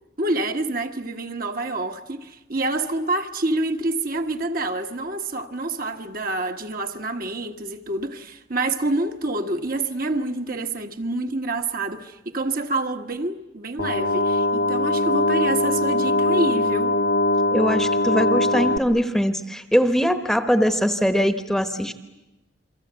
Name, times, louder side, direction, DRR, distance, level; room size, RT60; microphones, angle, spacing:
voice 1, 0.2-17.0, right 2 dB, 45° right, 1.4 m, -27 dB
sound 1, 13.8-18.8, left 2 dB, 75° left, 1.5 m, -21 dB
voice 2, 17.5-21.9, equal, ahead, 1.1 m, -21 dB
28.5 x 24.0 x 8.2 m
head